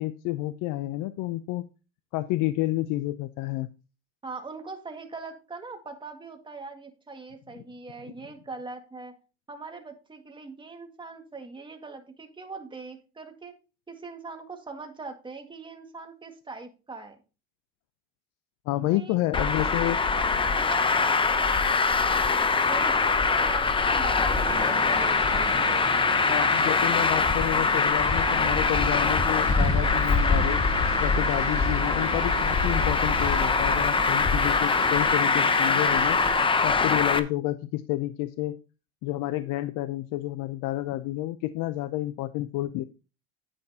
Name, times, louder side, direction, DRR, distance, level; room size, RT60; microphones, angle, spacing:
voice 1, 0.0-1.7 2.1-3.7 18.7-20.0 26.3-30.6 31.0-36.2 36.6-38.6 39.0-42.8, left 16 dB, 60° left, 14 dB, 0.6 m, -30 dB
voice 2, 4.2-9.2 9.5-13.5 13.9-17.2 18.7-22.4 22.7-26.2 27.5-27.8, right 4 dB, 15° right, 4 dB, 1.9 m, -41 dB
Traffic noise roadway noise, 19.3-37.2, left 4 dB, 15° left, 0.7 m, -23 dB
Boat Water vehicle, 24.3-36.5, right 11 dB, 40° right, 0.8 m, -38 dB
9.8 x 9.0 x 2.8 m, 0.31 s
supercardioid pair, 125°, 36 cm